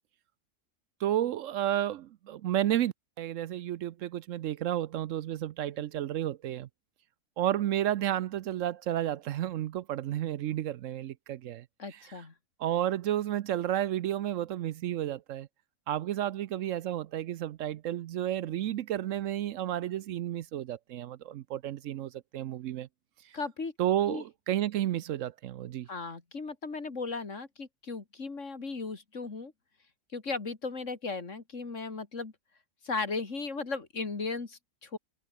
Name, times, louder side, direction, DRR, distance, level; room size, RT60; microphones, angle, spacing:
voice 1, 1.0-6.7 7.4-11.6 11.9-12.0 12.6-15.5 15.9-22.9 23.8-25.9, right 12 dB, 70° right, 0.9 m, -31 dB
voice 2, 11.8-12.3 23.3-23.7 24.1-24.2 25.9-29.5 30.1-32.3 32.8-35.0, left 4 dB, 60° left, 2.9 m, -36 dB
omnidirectional pair, 1.4 m